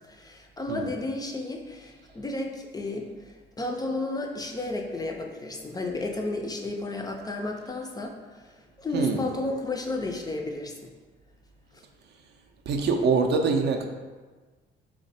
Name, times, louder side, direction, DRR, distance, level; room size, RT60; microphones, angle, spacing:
voice 1, 0.1-10.7 11.7-11.8, left 2 dB, 20° left, 2 dB, 0.4 m, -33 dB
voice 2, 12.7-13.9, right 4 dB, 60° right, 4 dB, 0.4 m, -24 dB
3.0 x 2.1 x 4.1 m, 1.3 s
cardioid pair, 90°, 20 cm